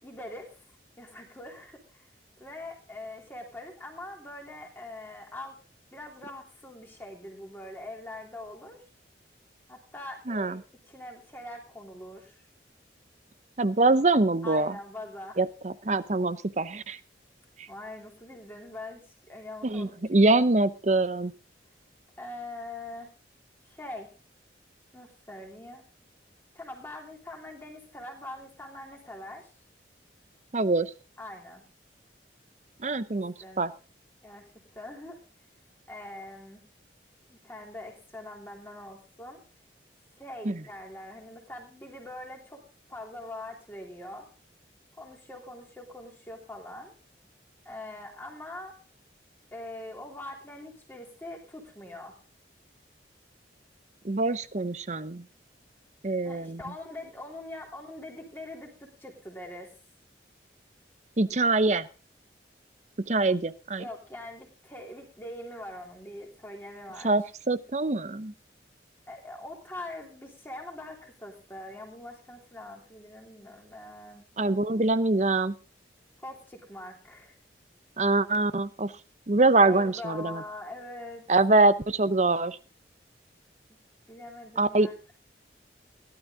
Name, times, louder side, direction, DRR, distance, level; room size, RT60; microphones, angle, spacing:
voice 1, 0.0-0.5 1.0-2.1 2.4-5.6 5.9-8.8 9.7-10.6 10.9-12.4 14.4-15.4 17.7-19.0 19.3-20.4 22.2-23.1 23.6-24.1 24.9-25.8 26.5-29.5 31.2-31.6 33.1-33.6 34.2-35.2 35.9-36.6 37.3-39.4 40.2-42.6 42.9-44.3 45.0-46.9 47.6-48.7 49.5-52.2 56.2-59.7 63.8-67.1 69.1-74.2 76.2-77.3 79.6-81.2 84.1-85.1, left 1 dB, 10° left, 0 dB, 3.2 m, -43 dB
voice 2, 10.3-10.6 13.6-14.7 15.4-17.0 19.6-21.3 30.5-30.9 32.8-33.7 40.4-40.6 54.0-55.2 56.0-56.6 61.2-61.9 63.1-63.8 67.0-68.3 74.4-75.5 78.0-78.9 79.3-80.4 81.3-82.6 84.6-84.9, right 2 dB, 40° right, 15 dB, 0.7 m, -24 dB
16.5 x 12.0 x 3.8 m, 0.34 s
head